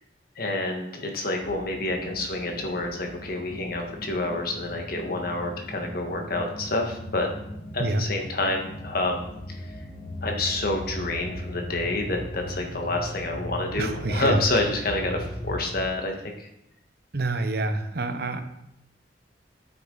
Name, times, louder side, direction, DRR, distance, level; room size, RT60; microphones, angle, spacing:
voice 1, 0.3-7.3 7.7-9.8 10.2-16.5, left 2 dB, 55° left, 2 dB, 1.5 m, -28 dB
sound 1, 1.4-15.9, equal, 20° left, 1.7 m, -38 dB
voice 2, 13.8-14.4 17.1-18.4, right 2 dB, 55° right, 8 dB, 0.8 m, -27 dB
9.2 x 6.7 x 4.0 m, 0.81 s
head